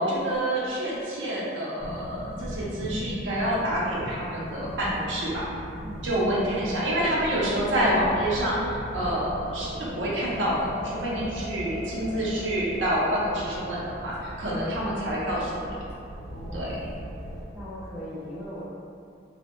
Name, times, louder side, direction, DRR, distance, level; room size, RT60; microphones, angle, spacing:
voice 1, 0.0-5.4 6.0-15.8 16.5-16.7, right 1 dB, 75° right, -6 dB, 0.5 m, -27 dB
sound 1, 1.8-17.4, equal, 65° left, 0.5 m, -38 dB
voice 2, 16.3-16.7 17.5-18.6, equal, 5° right, -11 dB, 0.4 m, -39 dB
2.6 x 2.0 x 2.4 m, 2.5 s
head